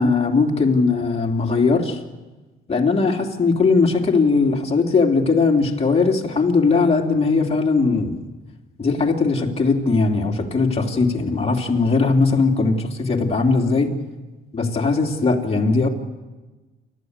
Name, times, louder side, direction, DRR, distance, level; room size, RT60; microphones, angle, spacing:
voice 1, 0.0-2.0 2.7-8.2 8.8-13.9 14.5-15.9, left 4 dB, 30° left, 0 dB, 3.2 m, -19 dB
29.0 x 12.5 x 8.2 m, 1.2 s
cardioid pair, 90°, 20 cm